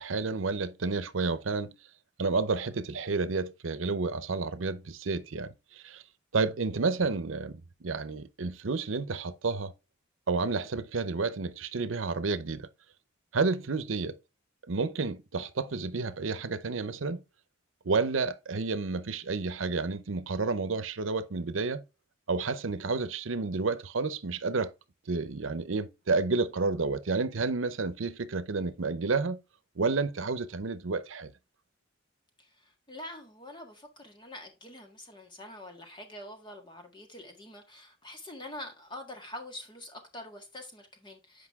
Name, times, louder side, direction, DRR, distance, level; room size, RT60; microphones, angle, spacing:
voice 1, 0.0-1.7 2.2-6.0 6.3-9.7 10.3-12.7 13.3-14.2 14.7-17.2 17.8-21.8 22.3-24.7 25.1-29.4 29.8-31.3, right 4 dB, 85° right, 0.7 m, -30 dB
voice 2, 32.4-41.5, left 1 dB, 25° left, 1.6 m, -45 dB
8.1 x 5.2 x 3.6 m
head